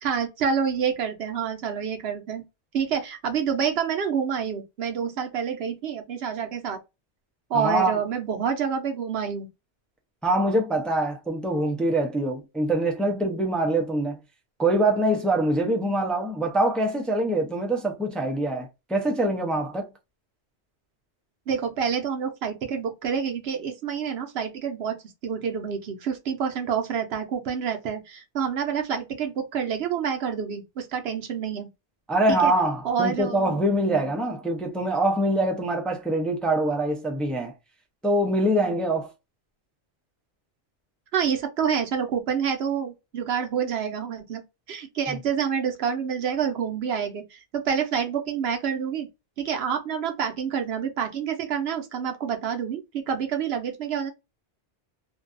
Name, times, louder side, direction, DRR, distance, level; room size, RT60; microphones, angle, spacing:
voice 1, 0.0-2.4 2.7-6.8 7.5-9.5 21.5-31.7 32.3-32.5 32.8-33.6 41.1-44.4 44.7-49.1 49.4-54.1, right 7 dB, 65° right, 0.8 m, -28 dB
voice 2, 7.5-8.0 10.2-14.2 14.6-19.9 32.1-37.5 38.0-39.1, right 1 dB, ahead, 0.3 m, -24 dB
2.5 x 2.3 x 2.4 m
omnidirectional pair, 1.2 m